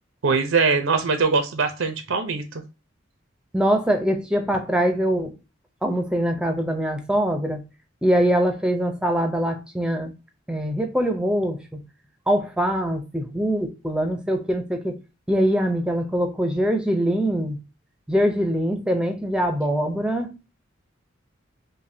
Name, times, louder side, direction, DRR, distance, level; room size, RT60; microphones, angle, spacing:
voice 1, 0.2-2.6, right 4 dB, 90° right, 0.8 m, -22 dB
voice 2, 3.5-5.3 5.8-7.6 8.0-10.1 10.5-11.8 12.3-15.0 15.3-17.6 18.1-20.3, equal, 5° right, 0.6 m, -23 dB
5.3 x 2.2 x 2.7 m
head